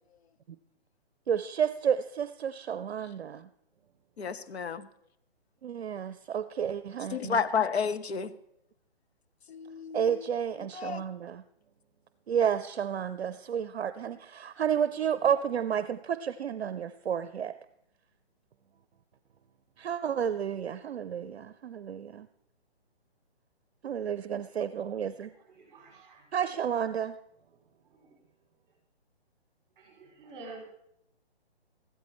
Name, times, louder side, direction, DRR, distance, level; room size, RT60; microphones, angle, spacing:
voice 1, 1.3-3.5 5.6-7.4 9.9-11.4 12.3-17.5 19.8-22.3 23.8-25.3 26.3-27.1, right 8 dB, 70° right, 13 dB, 0.6 m, -31 dB
voice 2, 4.2-4.9 7.1-8.3 9.5-10.3 10.6-11.0, left 6 dB, 75° left, 12 dB, 0.9 m, -31 dB
voice 3, 25.0-26.3 27.6-28.2 29.8-30.6, right 3 dB, 20° right, -2 dB, 5.1 m, -50 dB
15.0 x 13.0 x 3.2 m, 0.77 s
hypercardioid pair, 160°, 32 cm